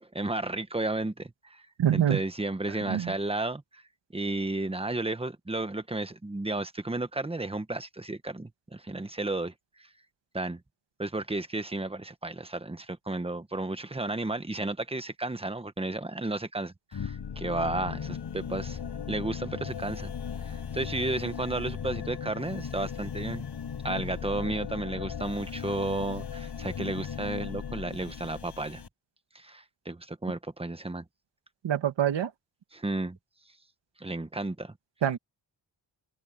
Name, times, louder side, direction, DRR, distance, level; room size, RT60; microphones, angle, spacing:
voice 1, 0.0-1.6 1.9-3.8 4.1-9.5 9.8-9.9 10.3-10.6 11.0-18.8 19.1-20.1 20.4-23.4 23.8-28.8 29.3-31.0 32.7-33.2 34.0-34.8, right 2 dB, 15° right, 1.3 m, -33 dB
voice 2, 1.8-2.2 2.9-3.1 31.6-32.3 35.0-35.2, right 10 dB, 85° right, 2.3 m, -25 dB
sound 1, 16.9-28.9, left 7 dB, 70° left, 5.8 m, -37 dB
wide cardioid pair, 105°, 42 cm